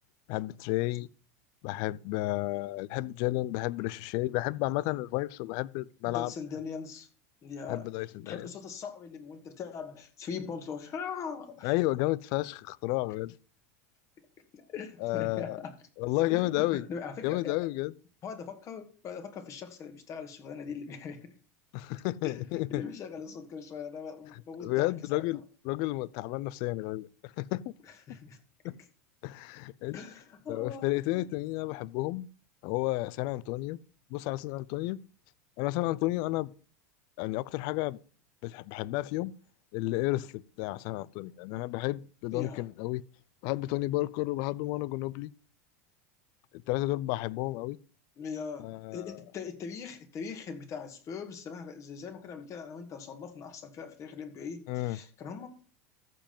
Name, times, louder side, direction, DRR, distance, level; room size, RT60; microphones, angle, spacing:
voice 1, 0.3-1.1 1.6-6.3 7.7-8.5 11.6-13.4 15.0-15.6 16.0-16.8 17.2-17.9 21.7-22.8 24.6-27.7 28.6-28.7 29.2-30.0 30.5-32.3 32.6-33.8 34.1-35.0 35.6-36.5 37.2-38.0 38.4-39.3 39.7-43.0 43.4-45.3 46.5-47.8 48.6-49.2 54.7-55.0, left 19 dB, 60° left, 0.5 m, -32 dB
voice 2, 6.0-7.1 7.4-7.9 8.3-11.7 14.2-14.3 14.5-15.7 16.3-17.6 18.2-21.3 22.2-25.3 28.1-28.4 29.9-31.2 42.3-42.7 48.2-55.5, left 6 dB, 40° left, 2.2 m, -41 dB
14.0 x 5.2 x 5.3 m
hypercardioid pair, 105°, 8 cm